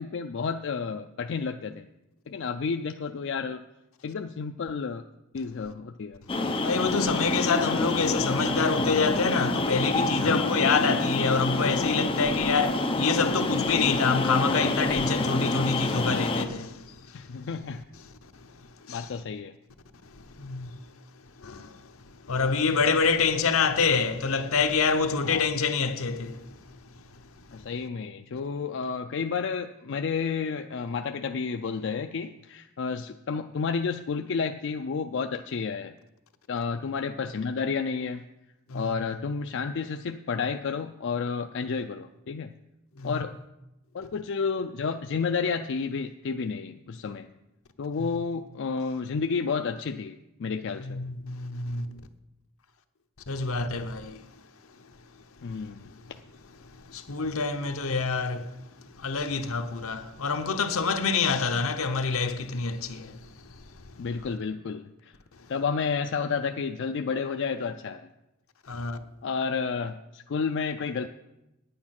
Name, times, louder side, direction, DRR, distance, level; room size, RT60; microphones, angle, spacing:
voice 1, 0.0-1.8 2.3-3.6 4.0-5.0 5.3-6.2 10.2-10.6 17.1-17.8 18.9-19.6 22.4-22.5 25.2-25.4 27.5-35.9 36.5-38.2 38.7-42.5 43.0-43.3 43.9-47.3 47.8-51.0 55.4-55.9 64.0-65.1 65.5-68.1 69.2-71.1, left 5 dB, 60° left, 0.4 m, -31 dB
sound 1, 6.3-16.5, left 2 dB, 25° left, 0.8 m, -27 dB
voice 2, 6.6-17.3 18.2-19.1 20.1-20.9 21.4-26.6 27.4-27.6 38.7-38.9 43.0-43.2 48.0-48.2 50.8-52.0 53.3-54.3 55.5-56.0 56.6-63.8 65.4-65.5 68.7-69.0, left 4 dB, 80° left, 0.9 m, -27 dB
9.5 x 8.5 x 5.9 m
head